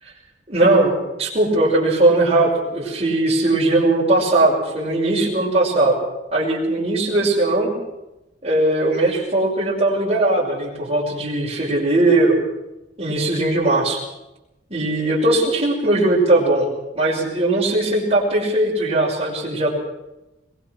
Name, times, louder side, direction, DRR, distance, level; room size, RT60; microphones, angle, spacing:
voice 1, 0.5-6.0 6.3-7.7 8.4-12.4 13.0-14.0 14.7-16.7 16.9-19.7, right 2 dB, 35° right, -8 dB, 6.0 m, -19 dB
22.5 x 21.5 x 6.2 m, 0.96 s
head